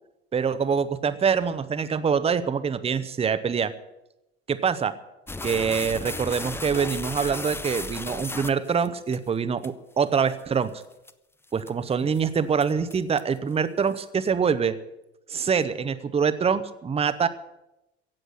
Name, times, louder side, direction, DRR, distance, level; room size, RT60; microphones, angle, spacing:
voice 1, 0.3-3.7 4.5-4.9 5.4-10.8 11.5-14.8 15.3-17.3, right 6 dB, 20° right, 12 dB, 0.9 m, -25 dB
sound 1, 5.3-9.2 9.6-9.7 10.3-10.4 10.8-11.1 11.6-11.9 12.1-12.2 12.6-13.4, left 3 dB, 5° left, 0.6 m, -34 dB
16.5 x 7.8 x 9.3 m, 0.91 s
figure-of-eight pair, 65°, 33 cm